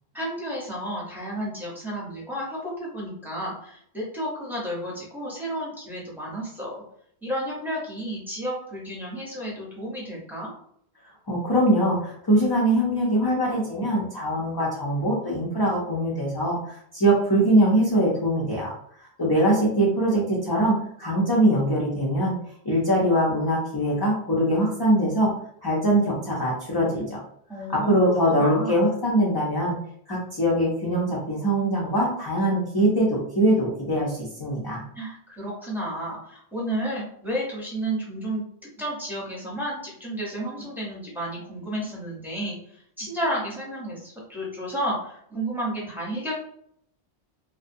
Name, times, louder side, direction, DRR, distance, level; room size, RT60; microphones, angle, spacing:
voice 1, 0.1-6.8 7.2-10.5 27.5-27.9 28.3-28.8 34.9-46.3, right 1 dB, ahead, -5 dB, 0.7 m, -32 dB
voice 2, 11.3-18.7 19.0-22.3 22.6-25.3 25.6-27.2 27.7-29.7 30.1-34.8, right 1 dB, 35° left, -6 dB, 0.3 m, -22 dB
2.6 x 2.0 x 2.5 m, 0.67 s
omnidirectional pair, 1.1 m